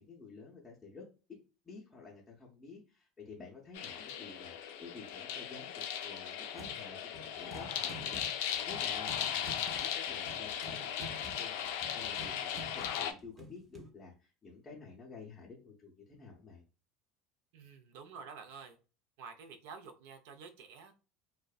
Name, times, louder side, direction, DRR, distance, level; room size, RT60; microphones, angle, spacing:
voice 1, 0.0-1.4 1.6-16.6, left 4 dB, 20° left, -3 dB, 0.5 m, -51 dB
sound 1, 3.7-13.1, left 9 dB, 80° left, 0.3 m, -37 dB
sound 2, 6.5-6.9 7.1-13.9, right 2 dB, 25° right, 0.5 m, -50 dB
voice 2, 17.5-18.8 19.2-21.0, right 5 dB, 75° right, 7 dB, 0.4 m, -49 dB
2.5 x 2.1 x 2.3 m, 0.34 s
supercardioid pair, 125°, 0 cm